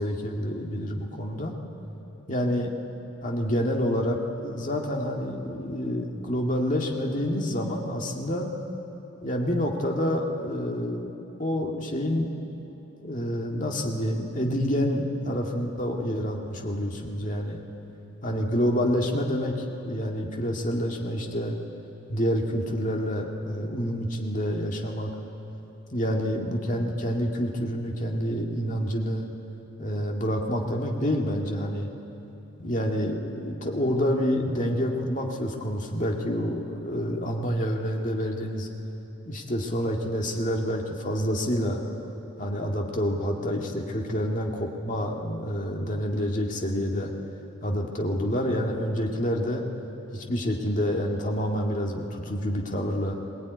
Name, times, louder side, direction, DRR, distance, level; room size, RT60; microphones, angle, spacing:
voice 1, 0.0-1.5 2.3-2.7 3.2-8.5 9.2-11.1 11.4-12.3 13.0-17.6 18.2-19.5 19.8-21.6 22.1-25.1 25.9-29.3 29.8-31.9 32.6-38.7 39.3-41.8 42.4-47.1 47.6-49.6 50.1-53.1, equal, 35° left, 1 dB, 2.0 m, -28 dB
21.0 x 18.5 x 9.5 m, 3.0 s
head